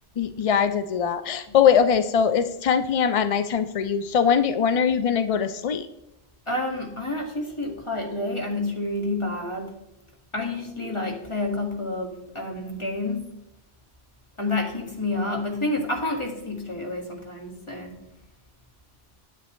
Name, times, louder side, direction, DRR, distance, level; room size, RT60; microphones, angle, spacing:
voice 1, 0.2-5.8, left 7 dB, 55° left, 10 dB, 0.4 m, -22 dB
voice 2, 6.5-9.7 10.3-13.2 14.4-17.9, left 2 dB, 30° left, 0 dB, 1.9 m, -29 dB
9.5 x 8.4 x 3.1 m, 0.90 s
omnidirectional pair, 1.1 m